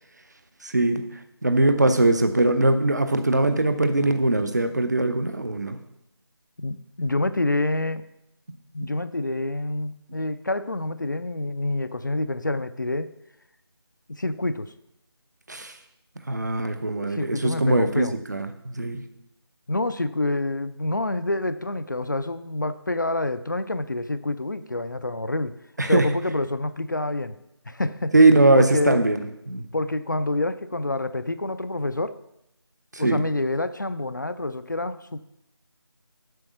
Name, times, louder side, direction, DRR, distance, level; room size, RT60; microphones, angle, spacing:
voice 1, 0.6-1.1 1.4-5.8 15.5-15.8 16.3-19.0 25.8-26.1 28.1-29.7 32.9-33.2, right 2 dB, 40° right, 8 dB, 0.7 m, -21 dB
voice 2, 6.6-8.1 8.7-13.1 14.1-14.7 17.2-18.2 19.7-25.5 25.9-27.4 27.7-28.1 28.6-29.0 29.7-32.2 33.0-35.2, left 2 dB, 45° left, 12 dB, 0.4 m, -27 dB
7.8 x 5.2 x 6.9 m, 0.83 s
figure-of-eight pair, 165°, 14 cm